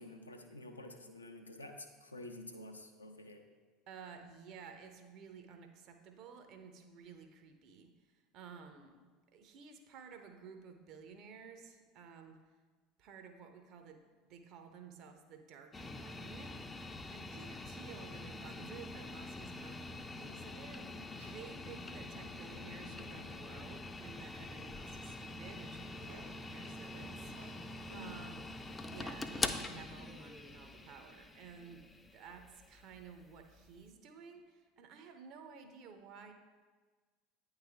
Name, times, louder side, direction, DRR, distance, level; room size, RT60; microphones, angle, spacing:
voice 1, 0.0-3.4 27.9-28.3, left 1 dB, 85° left, 4 dB, 0.5 m, -50 dB
voice 2, 3.9-7.9 8.3-9.0 9.3-12.4 13.0-28.5 28.9-36.3, right 6 dB, 50° right, 6 dB, 0.7 m, -54 dB
sound 1, 15.7-33.8, left 2 dB, 15° left, 0.4 m, -45 dB
Glass, 21.0-30.9, right 2 dB, 65° right, 1.6 m, -65 dB
9.0 x 3.3 x 3.5 m, 1.4 s
figure-of-eight pair, 70°, 0 cm